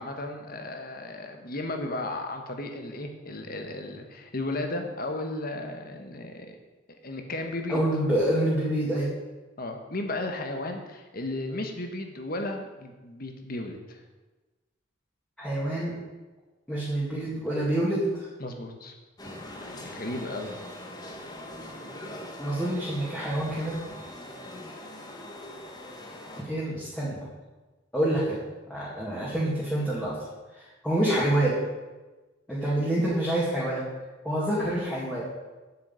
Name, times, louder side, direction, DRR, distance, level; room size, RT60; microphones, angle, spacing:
voice 1, 0.0-6.6 7.0-7.8 9.6-14.0 18.4-18.9 19.6-20.5, left 2 dB, 50° left, 4 dB, 1.4 m, -34 dB
voice 2, 7.7-9.1 15.4-16.0 16.7-18.3 22.4-23.8 26.4-27.3 27.9-28.4 28.7-30.2 30.5-31.6 32.5-33.9 34.2-35.3, right 1 dB, 5° left, -8 dB, 2.1 m, -27 dB
sound 1, 19.2-26.4, left 1 dB, 20° left, 1.3 m, -42 dB
7.7 x 6.6 x 8.2 m, 1.2 s
head